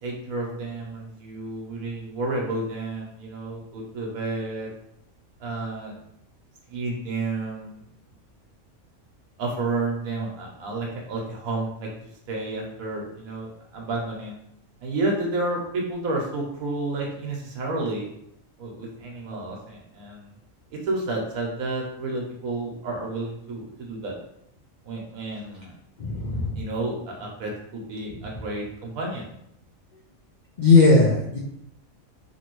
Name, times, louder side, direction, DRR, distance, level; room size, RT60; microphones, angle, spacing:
voice 1, 0.0-4.7 5.4-6.0 6.7-7.8 9.4-11.9 12.3-14.4 14.8-18.0 18.6-20.3 20.7-24.2 24.8-25.7 26.6-29.2, right 2 dB, 90° right, -1 dB, 1.1 m, -31 dB
voice 2, 26.0-26.6 30.6-31.4, left 3 dB, 80° left, -4 dB, 0.4 m, -17 dB
3.0 x 2.6 x 2.9 m, 0.74 s
omnidirectional pair, 1.4 m